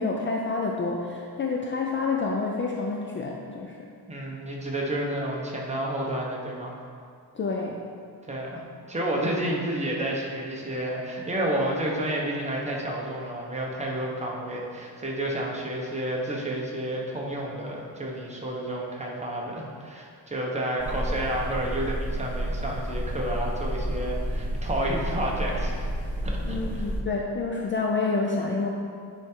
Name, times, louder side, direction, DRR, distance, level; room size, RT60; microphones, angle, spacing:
voice 1, 0.0-3.9 7.3-7.8 26.4-28.7, left 3 dB, 30° left, -1 dB, 0.5 m, -28 dB
voice 2, 4.1-6.7 8.3-25.9 26.2-26.9, right 1 dB, 15° right, -2 dB, 1.1 m, -30 dB
sound 1, 20.8-27.0, equal, 5° left, 1.1 m, -30 dB
10.0 x 3.6 x 4.6 m, 2.2 s
cardioid pair, 135°, 41 cm